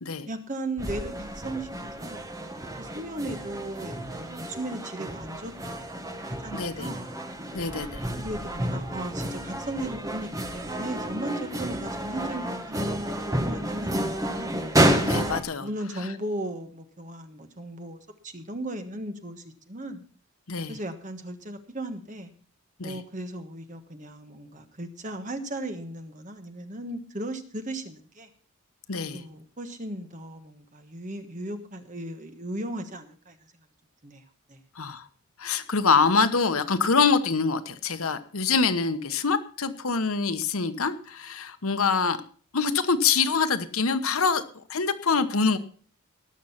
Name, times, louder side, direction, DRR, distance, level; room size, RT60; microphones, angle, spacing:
voice 1, 0.3-2.3 2.8-7.1 8.2-12.9 13.3-14.6 15.6-20.0 20.7-22.3 22.8-28.3 29.1-33.5 34.0-34.2 34.5-34.6, right 1 dB, 35° right, 7 dB, 1.4 m, -36 dB
sound 1, 0.8-15.4, right 1 dB, 15° right, 1.2 m, -30 dB
voice 2, 6.5-6.9 7.5-8.1 15.0-15.7 16.0-16.1 20.5-20.7 22.8-23.0 28.9-29.2 34.8-35.1 35.4-42.2 42.5-45.6, left 5 dB, 75° left, 10 dB, 1.1 m, -25 dB
19.0 x 6.6 x 5.8 m, 0.42 s
head